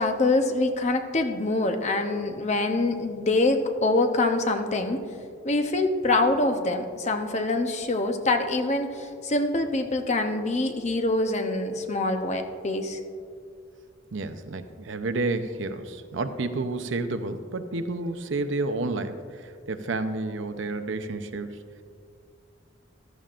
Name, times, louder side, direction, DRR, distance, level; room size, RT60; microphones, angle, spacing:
voice 1, 0.0-5.0 5.4-13.0, left 2 dB, 35° left, 6 dB, 0.8 m, -25 dB
voice 2, 14.1-21.6, right 2 dB, 75° right, 9 dB, 0.7 m, -30 dB
14.5 x 13.0 x 2.5 m, 2.2 s
head